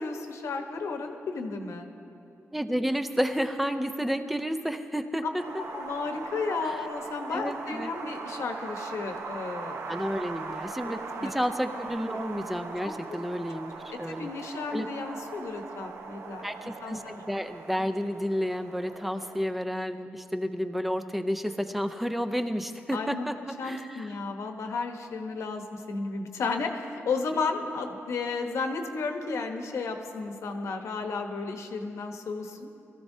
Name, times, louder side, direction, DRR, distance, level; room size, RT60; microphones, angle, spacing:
voice 1, 0.0-1.9 5.7-10.0 10.8-10.9 11.2-11.3 12.8-12.9 13.9-16.5 16.8-17.1 22.9-23.2 23.6-32.7, left 4 dB, 80° left, 5 dB, 1.0 m, -33 dB
voice 2, 2.5-5.4 6.6-6.9 7.3-7.9 9.9-14.3 14.7-14.9 16.4-23.3 23.6-24.1, equal, 5° right, 8 dB, 0.5 m, -31 dB
Wind, 5.4-19.4, right 4 dB, 70° right, 0.9 m, -40 dB
21.5 x 14.5 x 2.7 m, 2.8 s
wide cardioid pair, 165°, 5 cm